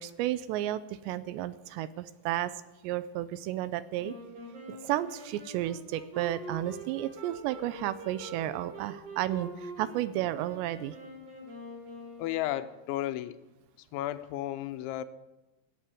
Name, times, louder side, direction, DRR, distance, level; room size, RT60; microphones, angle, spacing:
voice 1, 0.0-2.5 2.8-4.2 4.7-11.0, right 13 dB, 80° right, 15 dB, 2.7 m, -32 dB
Wind instrument woodwind instrument, 4.0-12.7, right 1 dB, 35° right, 4.3 m, -45 dB
voice 2, 12.2-13.4 13.9-15.0, left 13 dB, 90° left, 11 dB, 3.1 m, -33 dB
17.5 x 7.6 x 8.4 m, 1.0 s
omnidirectional pair, 5.2 m